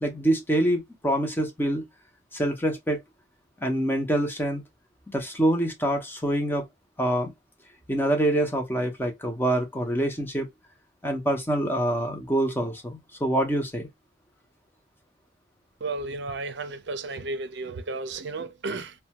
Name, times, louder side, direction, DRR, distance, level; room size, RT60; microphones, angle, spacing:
voice 1, 0.0-1.9 2.3-3.0 3.6-4.6 5.1-6.6 7.0-7.3 7.9-10.5 11.0-13.9, right 1 dB, 10° left, 0.7 m, -25 dB
voice 2, 15.8-18.9, right 3 dB, 60° right, 0.5 m, -33 dB
2.6 x 2.2 x 2.7 m
head